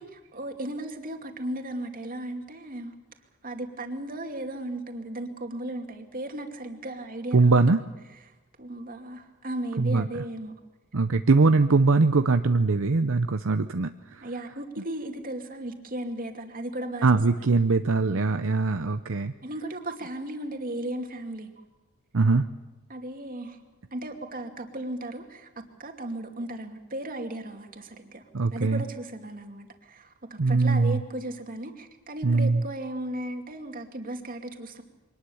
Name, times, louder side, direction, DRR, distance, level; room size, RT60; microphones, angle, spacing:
voice 1, 0.0-2.9 3.4-7.6 8.6-10.5 13.1-13.2 14.2-17.1 17.3-17.5 19.4-21.5 22.9-23.6 23.9-25.5 25.8-28.2 28.5-34.8, right 1 dB, 40° right, 4 dB, 2.5 m, -36 dB
voice 2, 7.3-7.8 9.8-10.1 10.9-14.3 17.0-19.3 22.1-22.5 28.3-28.8 30.4-31.0 32.2-32.6, right 3 dB, 65° right, 8 dB, 0.7 m, -22 dB
24.0 x 19.5 x 7.2 m, 1.1 s
head